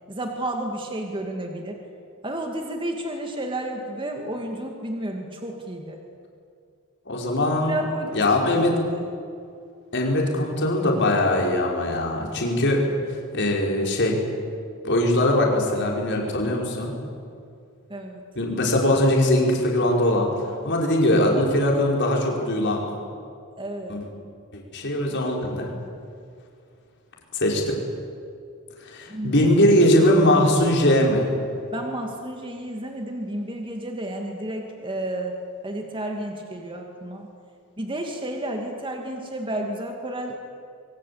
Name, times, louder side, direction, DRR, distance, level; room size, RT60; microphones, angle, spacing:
voice 1, 0.1-1.8 2.2-6.0 7.7-8.3 8.9-9.0 17.9-18.2 23.6-24.0 29.1-29.5 31.7-35.4 35.6-37.3 37.8-40.4, right 1 dB, 25° right, 2 dB, 2.3 m, -31 dB
voice 2, 7.1-7.8 8.1-8.7 9.9-12.8 13.3-14.2 14.8-16.9 18.4-20.3 20.6-22.8 23.9-24.0 24.5-25.7 27.3-27.8 28.8-31.3, left 1 dB, 55° left, -1 dB, 5.4 m, -21 dB
26.0 x 24.0 x 8.6 m, 2.4 s
head